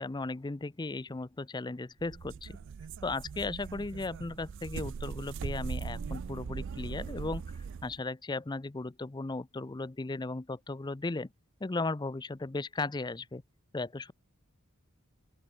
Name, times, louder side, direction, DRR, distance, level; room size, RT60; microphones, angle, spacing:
voice 1, 0.0-2.6 3.0-7.4 7.8-11.3 11.6-13.4 13.7-14.1, left 3 dB, 20° left, 0.5 m, -36 dB
sound 1, 2.0-8.0, right 6 dB, 55° right, 0.4 m, -40 dB
open air
head